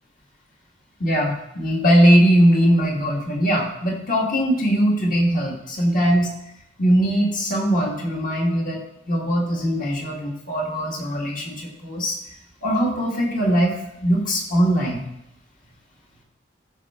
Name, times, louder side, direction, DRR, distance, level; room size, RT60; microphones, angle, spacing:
voice 1, 1.0-6.3 6.8-12.2 12.6-13.7 14.0-15.0, equal, 45° left, -2 dB, 2.2 m, -20 dB
13.5 x 5.5 x 3.7 m, 0.81 s
head